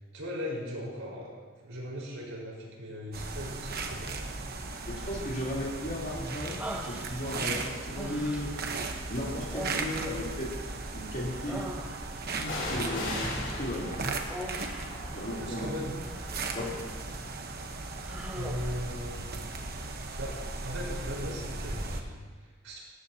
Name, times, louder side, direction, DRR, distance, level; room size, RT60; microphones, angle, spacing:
voice 1, 0.1-1.3 1.6-4.2 15.4-16.0 18.3-19.3 20.2-22.8, equal, 75° right, -4 dB, 4.8 m, -38 dB
sound 1, 3.1-22.0, right 3 dB, 50° right, 1.1 m, -37 dB
voice 2, 4.9-6.6 6.9-8.5 9.1-10.5 10.9-11.6 12.3-14.0 15.1-15.8 16.5-16.8, left 1 dB, 45° left, -5 dB, 3.5 m, -35 dB
Human voice, 6.6-7.5 7.9-8.7 9.5-10.9 11.2-12.3 14.3-15.0 16.0-17.0 17.4-17.6 18.0-18.8, equal, 10° right, 1.1 m, -41 dB
sound 2, 8.8-9.5 12.4-20.1 20.3-20.4, left 1 dB, 60° left, 3.7 m, -40 dB
18.5 x 14.5 x 2.9 m, 1.5 s
head